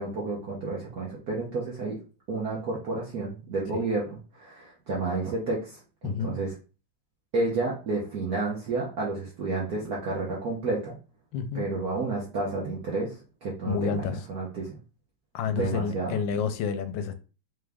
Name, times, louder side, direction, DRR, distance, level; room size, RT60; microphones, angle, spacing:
voice 1, 0.0-2.0 2.3-6.5 7.3-10.9 11.5-13.1 13.4-14.0 14.3-14.8 15.5-16.2, right 3 dB, 55° right, 1.3 m, -30 dB
voice 2, 6.0-6.4 11.3-11.7 13.7-14.3 15.3-17.1, left 6 dB, 75° left, 1.2 m, -29 dB
3.7 x 3.2 x 3.4 m
omnidirectional pair, 2.2 m